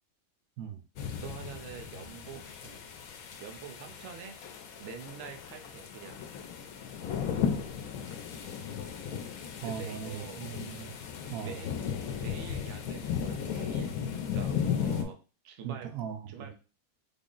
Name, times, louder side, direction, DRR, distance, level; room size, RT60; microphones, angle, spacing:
sound 1, 1.0-15.0, left 7 dB, 85° left, 1.0 m, -36 dB
voice 1, 1.2-4.4 4.8-6.2 9.6-10.4 11.4-11.7 12.2-14.0 14.2-15.2 15.4-15.9 16.3-16.5, right 7 dB, 65° right, 4 dB, 0.9 m, -45 dB
voice 2, 9.6-11.6 15.6-16.5, right 8 dB, 85° right, 7 dB, 1.0 m, -40 dB
3.8 x 2.0 x 3.7 m, 0.33 s
omnidirectional pair, 1.5 m